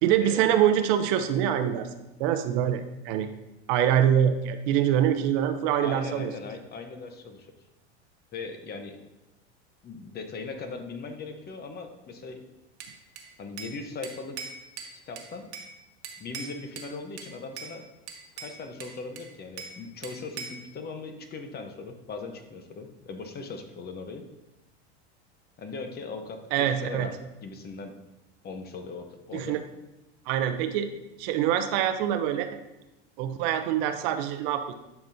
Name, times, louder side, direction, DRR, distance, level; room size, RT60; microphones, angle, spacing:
voice 1, 0.0-1.9 2.2-3.3 3.7-6.3 26.5-27.1 29.3-29.6 30.3-30.9 31.2-32.5 33.2-34.7, right 10 dB, 55° right, 9 dB, 0.8 m, -24 dB
voice 2, 5.8-7.5 8.3-9.0 9.8-12.4 13.4-14.4 15.1-15.4 16.2-17.8 18.4-24.3 25.6-27.1 27.4-27.9 28.4-29.6, left 4 dB, 30° left, 6 dB, 1.0 m, -39 dB
Bell / Glass, 12.8-13.8 14.0-15.7 16.0-16.9 17.2-17.7 18.1-19.8 20.0-20.7, right 5 dB, 85° right, 1.3 m, -41 dB
11.0 x 5.9 x 2.7 m, 0.96 s
hypercardioid pair, 105°, 33 cm